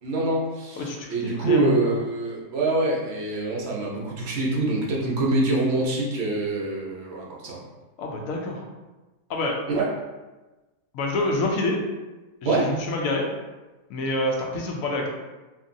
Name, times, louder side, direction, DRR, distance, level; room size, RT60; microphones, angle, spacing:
voice 1, 0.0-7.6 9.7-9.9 12.4-12.7, right 2 dB, 60° right, -3 dB, 0.7 m, -25 dB
voice 2, 0.8-2.0 8.0-8.7 9.3-9.6 10.9-11.8 12.4-13.3 13.9-15.1, left 2 dB, 70° left, 0 dB, 0.9 m, -27 dB
2.9 x 2.5 x 2.5 m, 1.1 s
omnidirectional pair, 1.6 m